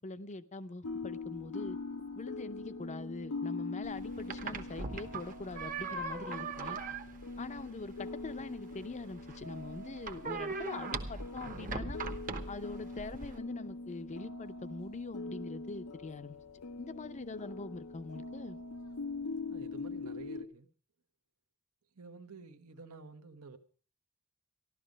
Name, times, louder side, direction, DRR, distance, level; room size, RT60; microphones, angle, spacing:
voice 1, 0.0-1.8 2.1-6.8 7.4-12.0 12.5-16.4 16.8-18.6, left 3 dB, 35° left, 0.6 m, -43 dB
sound 1, 0.8-20.4, left 3 dB, 85° left, 0.7 m, -43 dB
sound 2, 3.8-13.4, right 4 dB, 40° right, 0.9 m, -41 dB
voice 2, 19.5-20.7 21.9-23.6, right 4 dB, 80° right, 1.2 m, -51 dB
14.5 x 12.0 x 5.1 m
head